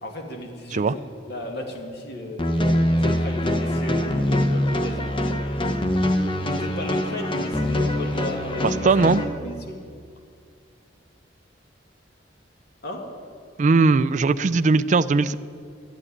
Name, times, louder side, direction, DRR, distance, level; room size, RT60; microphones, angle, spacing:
voice 1, 0.0-2.4 3.0-5.2 6.4-8.9 9.2-9.8 12.8-13.1, left 1 dB, 60° left, 2 dB, 2.2 m, -34 dB
sound 1, 2.4-9.2, left 1 dB, 30° left, 1.0 m, -23 dB
voice 2, 8.8-9.2 13.6-15.3, right 3 dB, 40° right, 13 dB, 0.4 m, -19 dB
12.5 x 9.2 x 9.8 m, 2.3 s
head